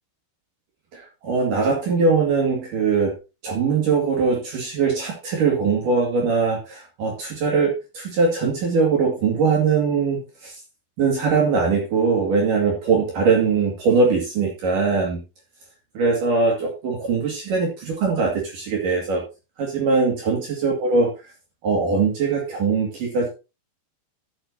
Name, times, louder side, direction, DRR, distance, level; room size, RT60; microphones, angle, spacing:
voice 1, 0.9-3.1 3.4-10.5 11.0-15.2 16.0-19.2 19.6-21.1 21.6-23.3, right 4 dB, 60° right, -1 dB, 3.7 m, -21 dB
14.0 x 7.6 x 2.9 m, 0.29 s
omnidirectional pair, 4.5 m